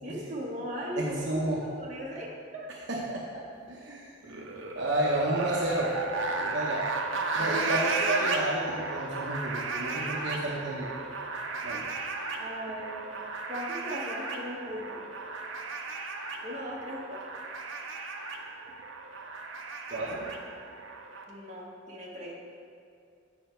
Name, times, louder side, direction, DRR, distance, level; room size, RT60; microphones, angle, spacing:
voice 1, 0.0-2.7 7.4-7.6 8.2-8.3 12.4-13.1 13.5-15.0 16.4-17.2 21.3-22.3, equal, 35° right, -5 dB, 1.4 m, -38 dB
voice 2, 1.0-1.6 2.9-3.4 3.7-4.4 4.7-5.9 6.4-6.8 7.3-10.9 11.6-11.8 19.9-20.3, right 1 dB, 65° right, -3 dB, 0.9 m, -31 dB
sound 1, 4.2-21.2, right 3 dB, 90° right, 0.7 m, -35 dB
8.5 x 5.7 x 4.5 m, 2.4 s
head